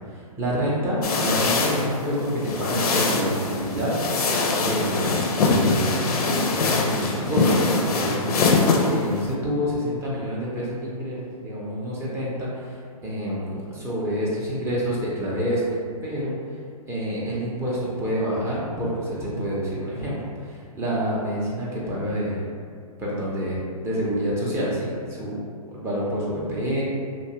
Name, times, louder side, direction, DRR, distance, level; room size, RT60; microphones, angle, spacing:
voice 1, 0.1-3.9 4.5-5.2 5.4-15.6 16.0-16.3 16.9-20.2 20.4-22.5 23.0-25.4 25.7-26.8, equal, 15° right, -7 dB, 0.5 m, -28 dB
sound 1, 1.0-9.3, left 3 dB, 80° left, 0.5 m, -23 dB
2.8 x 2.2 x 2.7 m, 2.2 s
hypercardioid pair, 130°, 19 cm